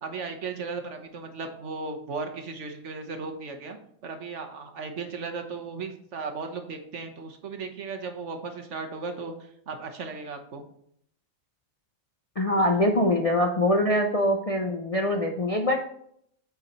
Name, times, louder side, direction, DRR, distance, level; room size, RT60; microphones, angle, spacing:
voice 1, 0.0-10.6, right 4 dB, 60° right, 6 dB, 1.2 m, -36 dB
voice 2, 12.4-15.8, left 1 dB, 40° left, 2 dB, 0.5 m, -23 dB
8.3 x 4.8 x 4.1 m, 0.69 s
omnidirectional pair, 1.4 m